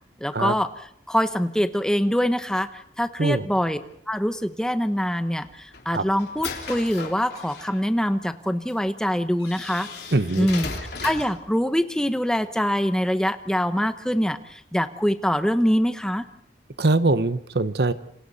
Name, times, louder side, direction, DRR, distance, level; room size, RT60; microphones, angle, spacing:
voice 1, 0.2-0.7 1.1-3.8 4.1-9.9 10.4-10.7 11.0-16.2, equal, 5° left, 10 dB, 0.9 m, -24 dB
sound 1, 5.4-7.8 8.7-8.8 9.4-11.4, left 4 dB, 70° left, 3.2 m, -35 dB
voice 2, 10.1-10.5 16.8-17.9, right 2 dB, 65° right, 13 dB, 0.9 m, -22 dB
28.5 x 26.5 x 4.2 m, 0.70 s
head